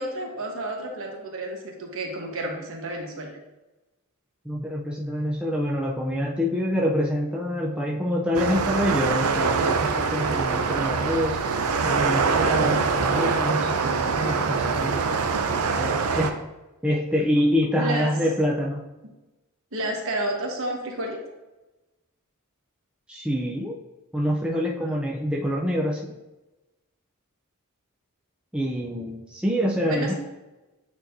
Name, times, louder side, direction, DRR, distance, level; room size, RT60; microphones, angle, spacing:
voice 1, 0.0-3.4 17.7-18.2 19.7-21.2 24.8-25.0 29.8-30.1, right 1 dB, 65° right, 1 dB, 1.2 m, -31 dB
voice 2, 4.5-11.4 11.8-15.2 15.8-16.4 16.8-18.8 23.1-23.8 24.1-26.1 28.5-30.1, equal, 5° right, -3 dB, 0.4 m, -26 dB
sound 1, 8.3-16.3, right 5 dB, 85° right, 0.5 m, -24 dB
8.8 x 4.1 x 2.6 m, 1.1 s
head